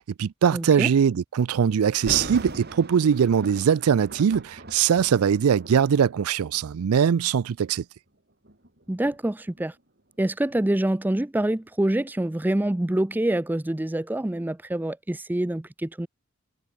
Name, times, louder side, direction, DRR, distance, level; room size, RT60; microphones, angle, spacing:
voice 1, 0.0-7.8, right 7 dB, 80° right, 0.4 m, -21 dB
voice 2, 0.5-0.9 8.9-9.7 10.2-16.1, right 1 dB, 10° right, 0.4 m, -26 dB
Thunder, 1.9-6.9 7.6-7.8 8.4-11.3 11.6-11.7, right 1 dB, 45° right, 5.1 m, -40 dB
head